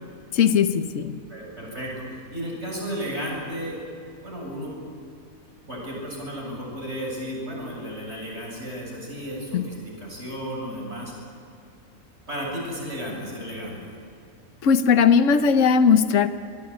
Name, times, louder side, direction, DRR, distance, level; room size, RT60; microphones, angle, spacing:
voice 1, 0.3-1.2 9.5-9.7 14.6-16.3, left 6 dB, 65° left, 10 dB, 1.3 m, -18 dB
voice 2, 1.3-3.8 4.2-4.8 5.7-11.1 12.3-14.0, equal, 50° right, -2 dB, 8.1 m, -33 dB
26.0 x 21.0 x 8.9 m, 2.4 s
omnidirectional pair, 1.5 m